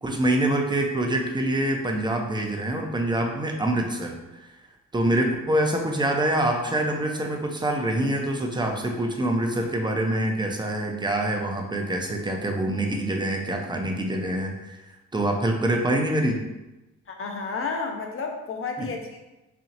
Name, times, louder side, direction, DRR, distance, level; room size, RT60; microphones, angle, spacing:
voice 1, 0.0-4.5 4.9-14.8 15.1-16.4 18.8-18.9, right 1 dB, 15° right, 2 dB, 0.7 m, -25 dB
voice 2, 17.1-19.2, left 4 dB, 40° left, 3 dB, 0.8 m, -31 dB
4.3 x 2.8 x 2.7 m, 1.0 s
supercardioid pair, 60°, 32 cm